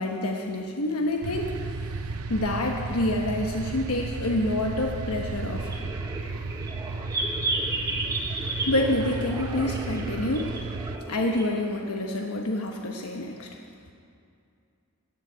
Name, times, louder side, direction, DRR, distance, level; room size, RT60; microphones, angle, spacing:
voice 1, 0.0-1.9 2.3-5.7 8.7-10.6 11.1-13.6, left 1 dB, 90° left, 1 dB, 1.1 m, -27 dB
sound 1, 1.2-11.0, right 3 dB, 75° right, 0.7 m, -34 dB
sound 2, 5.6-11.6, right 2 dB, 15° right, 1.5 m, -33 dB
15.5 x 7.3 x 9.8 m, 2.5 s
head